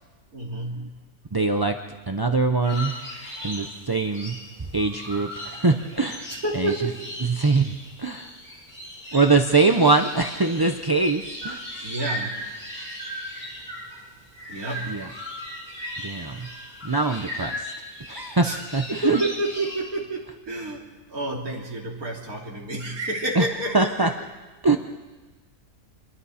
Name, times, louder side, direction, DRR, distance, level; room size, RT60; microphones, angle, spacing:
voice 1, 0.3-0.9 6.3-7.2 11.8-12.4 14.5-15.0 18.4-18.6 18.9-24.1, right 1 dB, 70° right, -1 dB, 3.4 m, -30 dB
voice 2, 1.3-1.8 2.1-3.0 3.4-6.7 7.2-8.3 9.1-11.6 14.9-15.1 16.0-16.5 16.8-17.7 18.1-19.2 23.3-23.4 23.7-24.1 24.6-24.8, right 3 dB, 30° right, 5 dB, 0.4 m, -23 dB
sound 1, 2.6-19.8, left 1 dB, 40° left, 7.1 m, -37 dB
27.5 x 22.5 x 4.3 m, 1.2 s
omnidirectional pair, 1.6 m